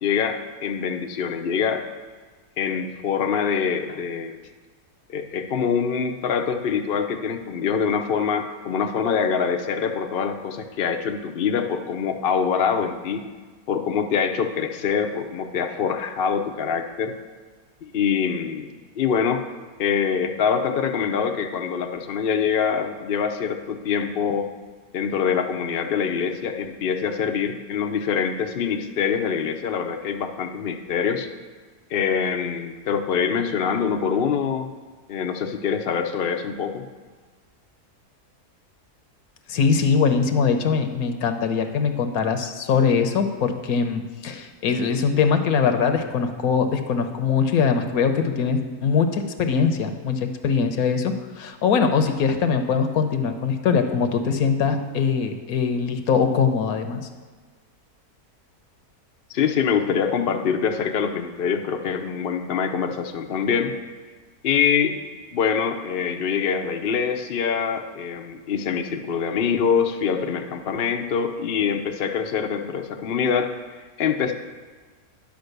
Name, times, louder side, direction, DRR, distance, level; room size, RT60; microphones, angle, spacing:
voice 1, 0.0-1.8 2.6-4.4 5.1-13.3 13.7-17.2 17.8-19.4 19.8-24.5 24.9-31.3 31.9-34.7 35.1-36.8 59.3-63.7 64.4-64.9 65.3-74.3, left 7 dB, 55° left, 4 dB, 0.7 m, -24 dB
voice 2, 39.5-57.0, left 6 dB, 75° left, 7 dB, 1.2 m, -22 dB
10.5 x 5.2 x 6.6 m, 1.4 s
omnidirectional pair, 1.6 m